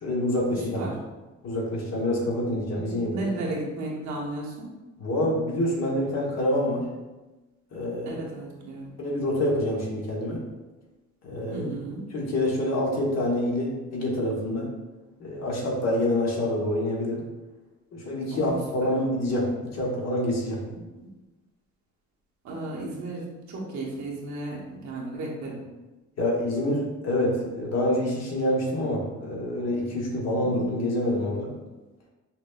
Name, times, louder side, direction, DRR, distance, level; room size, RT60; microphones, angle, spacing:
voice 1, 0.0-0.8 1.4-3.3 5.0-6.9 7.7-8.2 9.0-10.4 11.2-11.7 12.1-14.7 15.2-17.2 17.9-20.6 26.2-31.5, left 1 dB, 60° left, -2 dB, 1.1 m, -26 dB
voice 2, 2.8-4.7 8.0-8.9 11.5-12.1 18.3-18.9 21.0-21.1 22.4-25.6 30.4-30.7, right 2 dB, 70° right, -2 dB, 1.0 m, -34 dB
5.8 x 2.2 x 2.3 m, 1.1 s
cardioid pair, 90°, 30 cm